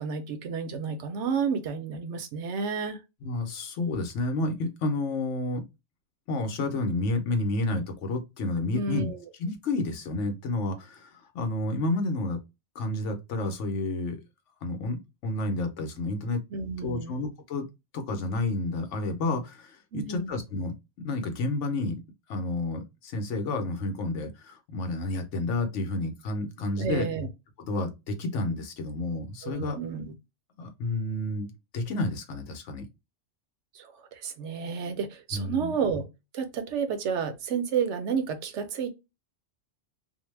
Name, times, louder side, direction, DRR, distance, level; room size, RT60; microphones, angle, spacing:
voice 1, 0.0-3.0 8.7-9.2 16.5-17.2 19.9-20.4 26.8-27.3 29.4-30.1 33.7-36.1 36.3-38.9, right 6 dB, 70° right, 0.9 m, -31 dB
voice 2, 3.2-5.6 6.3-9.1 9.4-12.4 12.7-14.2 14.6-16.4 16.8-17.6 17.9-22.0 22.3-27.1 27.7-29.8 30.6-32.8 35.3-35.7, left 2 dB, 75° left, 1.0 m, -30 dB
2.6 x 2.1 x 3.1 m
omnidirectional pair, 1.3 m